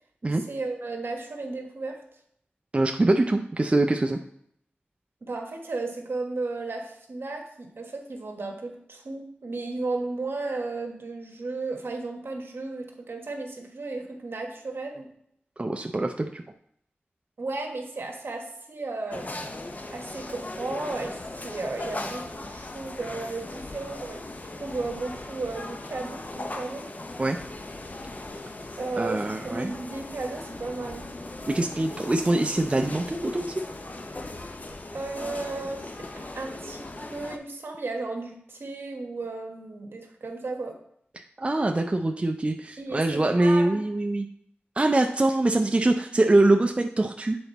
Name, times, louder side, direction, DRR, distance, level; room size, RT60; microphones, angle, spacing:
voice 1, 0.5-2.0 5.2-15.1 17.4-19.5 19.9-26.8 28.8-31.1 34.9-40.8 42.8-43.8, right 3 dB, 70° right, 3 dB, 1.2 m, -34 dB
voice 2, 2.7-4.2 15.6-16.4 27.2-27.4 29.0-29.7 31.5-33.5 41.2-44.3 44.8-47.4, right 2 dB, 30° right, 4 dB, 0.4 m, -23 dB
sound 1, 19.1-37.4, left 2 dB, 40° left, 0.6 m, -38 dB
7.8 x 4.0 x 4.1 m, 0.69 s
wide cardioid pair, 75°, 4 cm